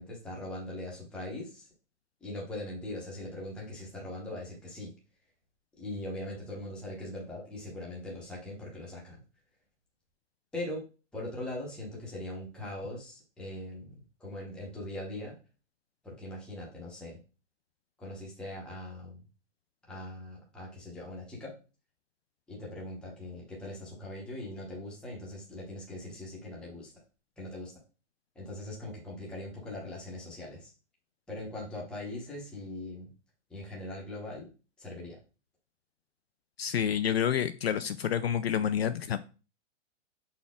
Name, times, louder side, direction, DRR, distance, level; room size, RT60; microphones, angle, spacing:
voice 1, 0.0-1.7 2.2-4.9 5.8-9.2 10.5-10.8 11.1-15.4 16.0-17.2 18.0-19.2 19.9-21.5 22.5-26.9 27.4-27.8 28.3-30.7 31.3-33.1 33.5-34.5 34.8-35.2, left 1 dB, ahead, -4 dB, 0.9 m, -41 dB
voice 2, 36.6-39.2, left 9 dB, 55° left, 11 dB, 0.5 m, -28 dB
7.0 x 4.2 x 3.6 m, 0.33 s
hypercardioid pair, 175°, 37 cm